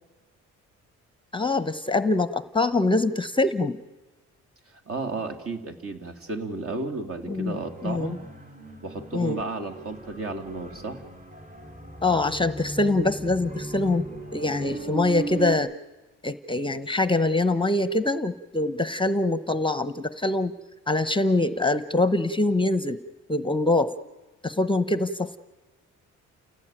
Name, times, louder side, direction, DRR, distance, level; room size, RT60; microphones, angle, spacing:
voice 1, 1.3-3.8 7.3-8.1 9.1-9.4 12.0-14.0 14.3-15.7 16.2-20.5 20.9-23.0 23.3-23.9 24.4-25.4, left 2 dB, 15° left, 13 dB, 0.8 m, -24 dB
voice 2, 4.7-8.2 8.8-11.0, right 3 dB, 50° right, 6 dB, 3.0 m, -33 dB
sound 1, 7.4-15.5, right 2 dB, 25° right, 5.6 m, -38 dB
29.5 x 17.0 x 9.1 m, 1.1 s
cardioid pair, 90°, 30 cm